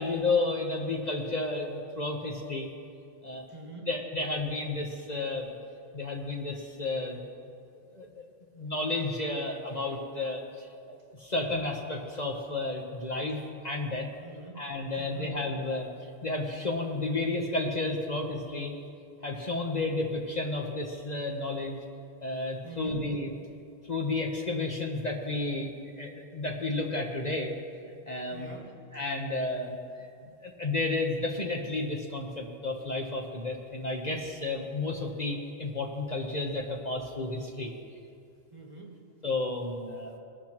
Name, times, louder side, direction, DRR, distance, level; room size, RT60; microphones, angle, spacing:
voice 1, 0.0-2.7 3.2-3.4 3.9-5.5 5.9-7.2 7.9-8.3 8.5-14.1 14.6-18.7 19.2-21.8 22.2-23.3 23.8-27.5 28.1-28.6 28.9-30.1 30.4-37.7 39.2-40.2, left 2 dB, 40° left, 0 dB, 1.1 m, -32 dB
voice 2, 3.5-3.9 14.2-14.6 15.0-15.4 22.6-23.1 28.3-28.7 38.5-39.1, right 3 dB, 25° right, 0 dB, 1.4 m, -44 dB
20.0 x 12.5 x 3.0 m, 2.5 s
omnidirectional pair, 1.2 m